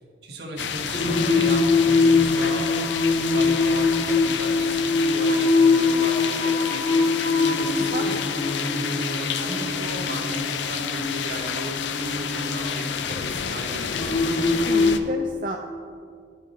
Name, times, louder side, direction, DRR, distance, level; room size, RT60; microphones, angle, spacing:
voice 1, 0.0-2.8 3.1-7.1 7.6-8.2 8.5-14.4, right 1 dB, 65° right, 0 dB, 1.4 m, -36 dB
sound 1, 0.6-15.0, left 7 dB, 75° left, 0.5 m, -30 dB
Singing, 0.9-15.0, left 3 dB, 30° left, 0.5 m, -23 dB
Bowed string instrument, 6.7-13.9, equal, 25° right, 1.2 m, -37 dB
voice 2, 14.6-15.6, right 2 dB, 45° right, 2 dB, 0.5 m, -30 dB
12.0 x 5.7 x 4.0 m, 2.2 s
head